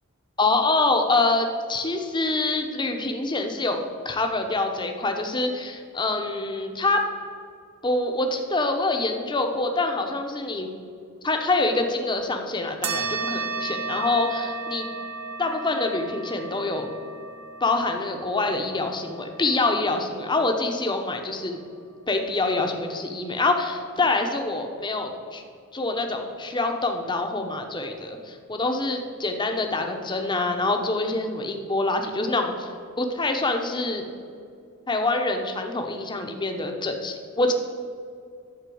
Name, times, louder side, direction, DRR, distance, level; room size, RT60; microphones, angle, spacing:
voice 1, 0.4-3.8 4.0-7.0 7.8-10.7 11.2-14.9 15.4-16.9 17.6-21.6 22.1-25.4 25.7-32.7 33.0-34.0 34.9-37.5, left 2 dB, 20° left, 4 dB, 0.8 m, -25 dB
sound 1, 12.8-21.7, right 4 dB, 75° right, 0.8 m, -35 dB
11.5 x 4.4 x 7.7 m, 2.3 s
head